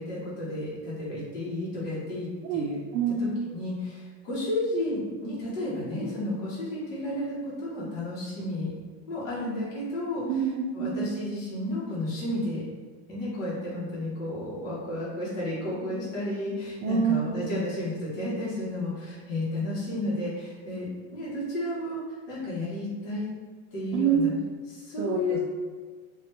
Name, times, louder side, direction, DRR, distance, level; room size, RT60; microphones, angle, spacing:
voice 1, 0.0-2.8 3.2-8.7 9.1-10.2 10.7-12.6 13.1-23.3 23.7-24.3 24.7-25.4, left 1 dB, 85° left, -8 dB, 1.3 m, -32 dB
voice 2, 2.4-3.3 10.3-11.1 16.8-17.4 23.9-24.3 25.0-25.4, right 7 dB, 50° right, -2 dB, 0.4 m, -27 dB
3.0 x 2.4 x 3.2 m, 1.5 s
supercardioid pair, 135°, 39 cm